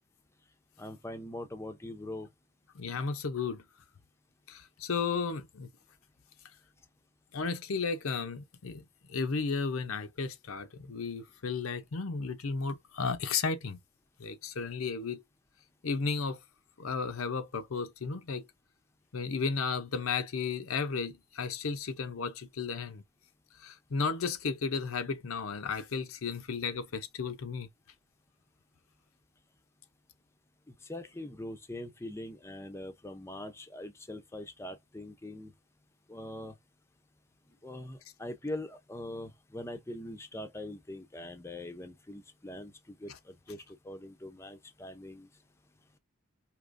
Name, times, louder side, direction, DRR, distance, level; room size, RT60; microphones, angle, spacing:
voice 1, 0.8-2.3 30.9-35.5 36.1-36.5 37.6-45.3, left 1 dB, 10° left, 0.5 m, -42 dB
voice 2, 2.7-3.6 4.5-5.7 7.3-13.8 14.2-15.2 15.8-16.4 16.8-18.5 19.1-23.0 23.6-27.7 43.1-43.2, left 5 dB, 75° left, 0.7 m, -34 dB
4.8 x 2.9 x 2.5 m
head